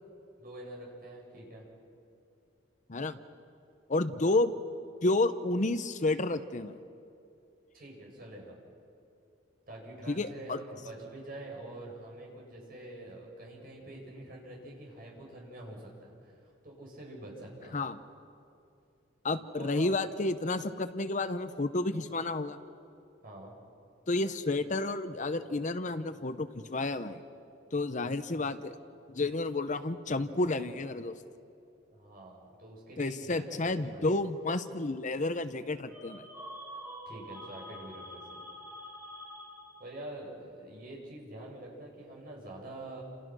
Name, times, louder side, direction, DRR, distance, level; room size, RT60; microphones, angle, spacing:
voice 1, 0.4-1.7 7.7-8.6 9.7-17.8 19.6-20.0 23.2-23.5 28.1-28.5 31.9-34.1 37.1-38.4 39.8-43.0, right 1 dB, 50° right, -1 dB, 7.5 m, -46 dB
voice 2, 3.9-4.5 5.0-6.7 10.1-10.6 17.7-18.0 19.2-22.6 24.1-27.2 27.7-28.7 29.1-31.1 33.0-36.3, left 2 dB, 40° left, 11 dB, 0.8 m, -31 dB
sound 1, 35.9-40.0, equal, 10° right, 4.2 m, -46 dB
30.0 x 28.0 x 6.3 m, 2.6 s
head